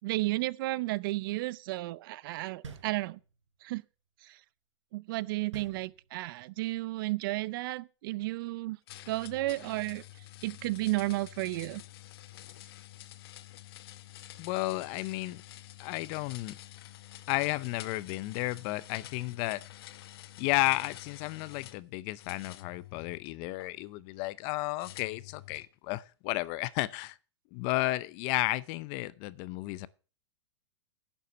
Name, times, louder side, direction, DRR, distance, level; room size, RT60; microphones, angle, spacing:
voice 1, 0.0-3.2 3.6-3.8 4.2-4.4 4.9-8.8 9.1-10.0 10.4-11.8, right 19 dB, 45° right, 0.6 m, -33 dB
sound 1, 2.6-3.6 5.5-6.4, right 6 dB, 85° right, 4.2 m, -47 dB
sound 2, 8.9-21.8 22.2-23.7 24.8-25.7, left 15 dB, 55° left, 0.9 m, -49 dB
voice 2, 14.4-15.4 15.8-16.6 17.3-19.6 20.4-27.2 27.5-29.9, left 20 dB, 35° left, 0.6 m, -33 dB
11.0 x 7.1 x 6.9 m
hypercardioid pair, 140°, 15 cm